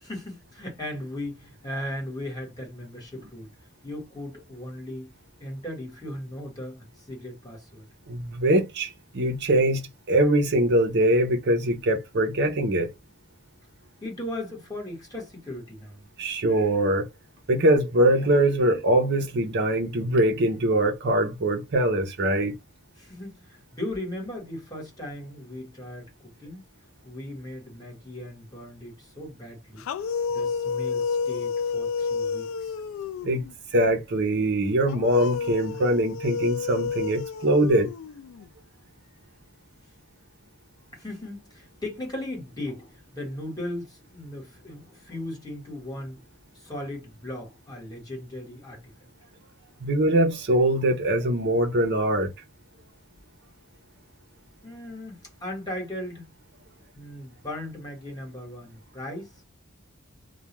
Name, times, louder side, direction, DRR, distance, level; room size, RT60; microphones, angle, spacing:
voice 1, 0.0-3.5 3.8-5.1 5.4-7.9 14.0-16.0 23.0-26.6 27.0-29.8 30.3-32.8 40.9-46.2 46.5-48.9 54.6-56.3 56.9-59.3, left 1 dB, 20° left, 1.3 m, -37 dB
voice 2, 8.1-12.9 16.2-17.1 17.5-22.5 33.2-33.5 33.7-37.9 49.8-52.3, right 1 dB, 55° right, 0.7 m, -22 dB
sound 1, 29.8-33.5 34.9-38.5, left 5 dB, 70° left, 0.3 m, -30 dB
2.3 x 2.2 x 3.0 m
head